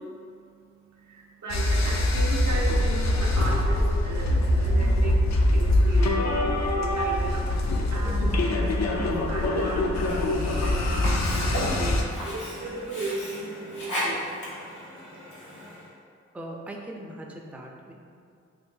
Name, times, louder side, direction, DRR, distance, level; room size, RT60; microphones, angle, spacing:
voice 1, 0.0-14.2, right 2 dB, 75° right, -1 dB, 0.6 m, -36 dB
sound 1, 1.5-12.0, left 1 dB, 65° left, 0.5 m, -23 dB
voice 2, 8.0-8.4 16.3-17.9, right 1 dB, 5° right, 0 dB, 0.4 m, -40 dB
Sink (filling or washing), 10.0-15.9, equal, 80° left, 0.9 m, -35 dB
2.6 x 2.6 x 3.7 m, 2.3 s
cardioid pair, 50°, 29 cm